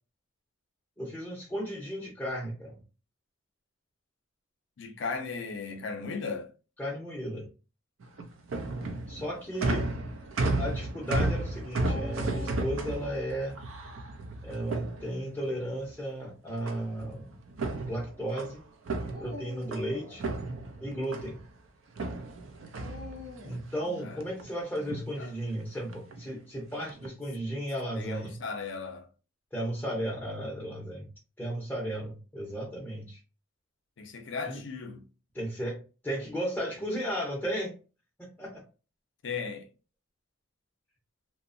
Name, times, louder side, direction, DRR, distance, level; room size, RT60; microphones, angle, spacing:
voice 1, 1.0-2.8 6.8-7.5 9.1-10.0 10.6-13.6 14.4-17.3 17.9-18.6 19.2-20.2 20.8-21.4 23.4-28.4 29.5-31.1 31.4-33.2 34.4-34.6 35.3-37.8 38.2-38.6, equal, 10° left, 0.5 m, -34 dB
voice 2, 4.8-6.5 19.9-20.0 23.9-24.2 25.2-25.3 27.9-29.1 34.0-35.0 39.2-39.7, left 4 dB, 60° left, 0.5 m, -37 dB
sound 1, 8.0-15.5 16.7-17.1 17.5-19.9 20.2-21.5 22.0-23.6 24.0-24.5 24.8-25.2 25.9-26.2 26.8-27.1, right 2 dB, 70° right, 0.4 m, -33 dB
Dog, 11.8-13.4 15.5-16.0 16.8-16.9 19.0-20.3 22.7-23.7, left 1 dB, 50° right, 0.8 m, -44 dB
2.8 x 2.0 x 2.5 m
head